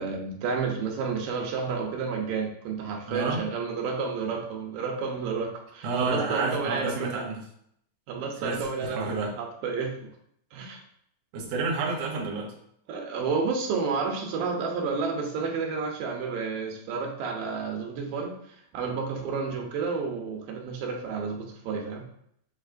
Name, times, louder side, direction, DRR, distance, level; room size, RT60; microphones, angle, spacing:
voice 1, 0.0-7.2 8.1-10.1 10.5-10.8 12.9-18.4 18.7-22.0, right 5 dB, 85° right, 1 dB, 2.4 m, -31 dB
voice 2, 3.1-3.4 5.8-7.4 8.4-9.3 11.3-12.5, right 3 dB, 70° right, -1 dB, 1.7 m, -30 dB
6.3 x 3.1 x 2.5 m, 0.69 s
omnidirectional pair, 3.9 m